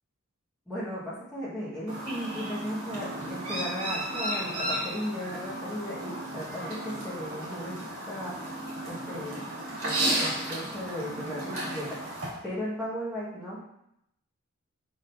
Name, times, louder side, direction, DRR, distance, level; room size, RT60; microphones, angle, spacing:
voice 1, 0.7-7.8 8.1-8.3 8.8-9.4 9.8-12.0 12.4-13.6, equal, 5° left, -9 dB, 1.4 m, -36 dB
Chirp tweet, 1.9-12.3, right 1 dB, 75° right, 1.7 m, -34 dB
5.0 x 3.8 x 2.7 m, 0.80 s
head